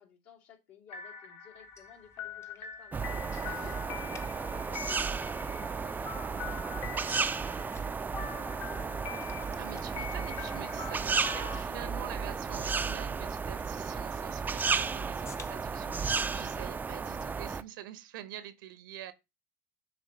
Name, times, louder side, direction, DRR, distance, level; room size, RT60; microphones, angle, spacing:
voice 1, 0.0-8.0 8.2-9.1, left 7 dB, 70° left, 2.5 m, -56 dB
sound 1, 0.9-11.6, left 7 dB, 45° left, 1.1 m, -44 dB
sound 2, 1.5-17.5, left 5 dB, 25° left, 0.7 m, -57 dB
sound 3, 2.9-17.6, right 5 dB, 15° right, 0.4 m, -34 dB
voice 2, 3.3-3.8 9.5-19.1, right 11 dB, 85° right, 0.9 m, -46 dB
7.2 x 3.0 x 5.0 m
supercardioid pair, 100°, 11 cm